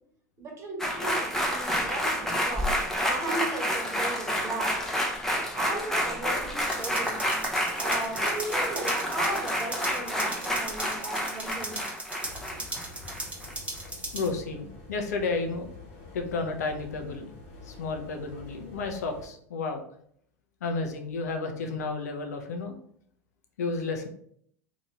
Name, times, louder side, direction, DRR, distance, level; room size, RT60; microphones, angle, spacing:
voice 1, 0.4-4.8 5.5-7.2 7.8-11.9 12.5-12.6, right 2 dB, 35° right, 0 dB, 1.2 m, -36 dB
sound 1, 0.8-13.5 13.8-13.9, equal, 5° left, 0.7 m, -29 dB
sound 2, 6.6-14.3, right 2 dB, 15° right, 0.9 m, -38 dB
sound 3, 12.2-19.3, left 3 dB, 60° left, 1.0 m, -47 dB
voice 2, 14.1-15.7 16.1-17.3 17.6-19.8 20.6-22.7 23.6-24.1, left 3 dB, 80° left, 4 dB, 0.5 m, -32 dB
2.8 x 2.6 x 3.0 m, 0.65 s
hypercardioid pair, 85°, 9 cm